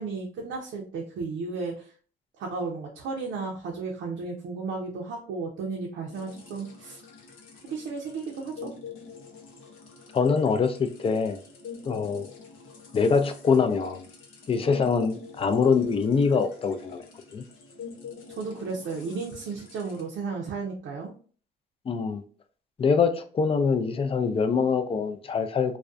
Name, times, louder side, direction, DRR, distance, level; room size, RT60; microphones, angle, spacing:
voice 1, 0.0-1.9 2.4-7.0 7.6-8.7 18.3-21.1, right 4 dB, 75° right, 0.5 m, -34 dB
sound 1, 6.1-20.0, left 6 dB, 85° left, 0.7 m, -46 dB
voice 2, 10.1-11.4 11.9-12.3 12.9-14.1 14.5-17.0 17.3-17.4 21.9-22.2 22.8-25.8, left 5 dB, 30° left, 0.3 m, -24 dB
2.3 x 2.2 x 2.4 m
cardioid pair, 90°, 20 cm